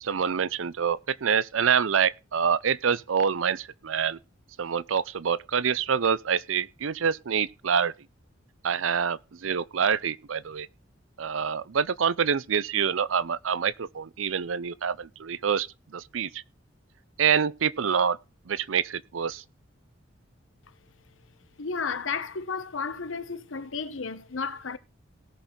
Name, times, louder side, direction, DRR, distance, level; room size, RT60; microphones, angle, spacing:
voice 1, 0.0-4.2 4.6-7.9 8.6-10.7 11.2-15.7 15.9-16.4 17.2-18.2 18.5-19.4, right 7 dB, 85° right, 0.6 m, -26 dB
voice 2, 21.6-24.8, left 5 dB, 80° left, 1.0 m, -33 dB
18.0 x 6.2 x 3.8 m
head